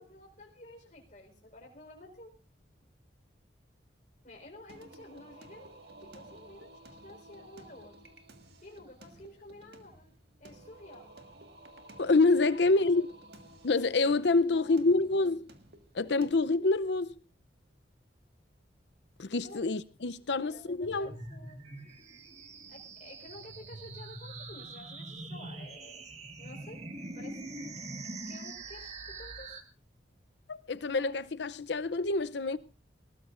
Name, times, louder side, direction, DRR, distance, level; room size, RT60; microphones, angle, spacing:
voice 1, 0.0-2.3 4.2-8.1 8.6-10.1 10.4-11.2 12.4-13.2 14.4-14.8 19.4-19.6 20.3-21.6 22.7-26.1 26.4-26.8 27.1-27.4 28.3-29.6, left 1 dB, 45° left, 4.4 m, -51 dB
Singing, 4.7-16.3, right 1 dB, 60° right, 1.8 m, -54 dB
voice 2, 12.0-13.1 13.6-15.5 15.9-17.1 19.2-21.1 30.5-32.6, left 3 dB, 70° left, 0.7 m, -27 dB
sound 1, 20.8-29.6, right 2 dB, 35° right, 1.7 m, -44 dB
20.0 x 19.0 x 2.5 m
head